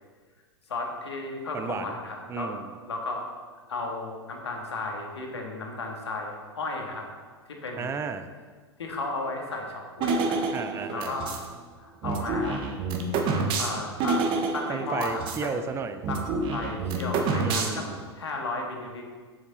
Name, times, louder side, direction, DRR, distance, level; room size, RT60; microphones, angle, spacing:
voice 1, 0.7-2.6 2.9-3.2 3.7-7.1 7.6-7.9 8.8-10.4 10.9-11.5 11.8-12.6 13.3-15.5 16.1-16.2 16.5-17.8 18.2-19.1, left 3 dB, 75° left, 1 dB, 1.7 m, -34 dB
voice 2, 1.5-2.0 2.3-2.7 7.8-8.3 10.5-11.2 14.7-16.0 17.1-18.0, right 5 dB, 20° right, 10 dB, 0.6 m, -33 dB
sound 1, 10.0-11.5 12.0-15.5 15.7-15.8 16.0-18.0, right 4 dB, 35° right, 1.2 m, -28 dB
8.0 x 7.1 x 4.1 m, 1.5 s
figure-of-eight pair, 95°, 14 cm